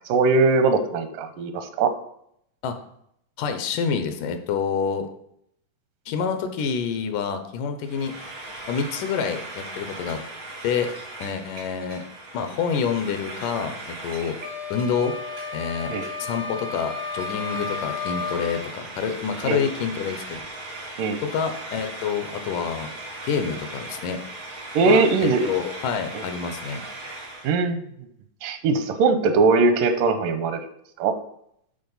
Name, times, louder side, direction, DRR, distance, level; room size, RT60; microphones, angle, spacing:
voice 1, 0.1-1.9 15.9-16.1 19.4-19.6 21.0-21.2 24.8-25.5 27.4-27.8 28.4-30.6 31.0-31.2, right 4 dB, 85° right, 9 dB, 2.3 m, -20 dB
voice 2, 3.4-5.1 6.1-8.1 8.7-10.2 10.6-10.9 11.2-12.1 12.3-14.4 14.7-15.1 15.5-20.4 21.2-22.9 23.2-24.2 24.8-26.8, left 6 dB, 80° left, 7 dB, 2.3 m, -27 dB
Frying (food), 7.8-27.5, right 2 dB, 65° right, 0.8 m, -38 dB
sound 1, 14.4-18.6, left 4 dB, 30° left, 0.5 m, -33 dB
10.5 x 4.2 x 3.9 m, 0.73 s
omnidirectional pair, 3.8 m